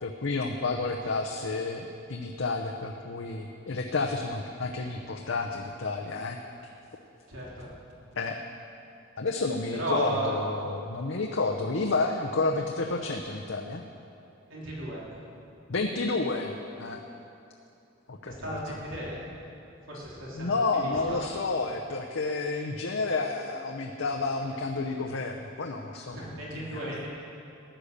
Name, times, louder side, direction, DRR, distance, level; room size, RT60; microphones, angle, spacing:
voice 1, 0.0-6.4 8.2-8.4 9.2-13.8 15.7-17.0 18.1-18.8 20.3-27.1, left 3 dB, 75° left, 2 dB, 0.8 m, -30 dB
voice 2, 7.3-7.7 9.7-10.3 14.5-15.2 18.2-19.2 19.9-21.3 24.5-24.6 26.1-27.1, right 1 dB, 80° right, -5 dB, 3.5 m, -35 dB
15.0 x 10.0 x 6.7 m, 2.7 s
head